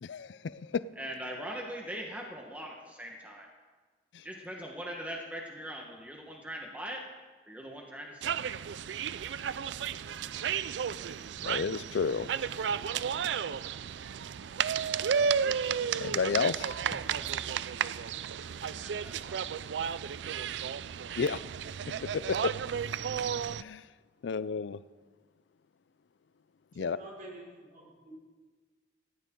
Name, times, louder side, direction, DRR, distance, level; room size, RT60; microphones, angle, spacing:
voice 1, 0.0-0.8 4.1-4.2 11.4-12.5 16.0-16.8 21.2-21.4 22.1-22.5 23.6-23.9 24.2-24.8 26.7-27.0, left 5 dB, 70° left, 16 dB, 0.4 m, -31 dB
voice 2, 1.0-3.5 4.2-7.0 7.4-8.3 16.9-19.7, equal, 10° right, 0 dB, 1.3 m, -42 dB
sound 1, 8.2-23.6, right 7 dB, 70° right, 0.4 m, -33 dB
voice 3, 26.7-28.1, right 1 dB, 50° right, -3 dB, 5.4 m, -48 dB
18.5 x 15.0 x 3.8 m, 1.4 s
head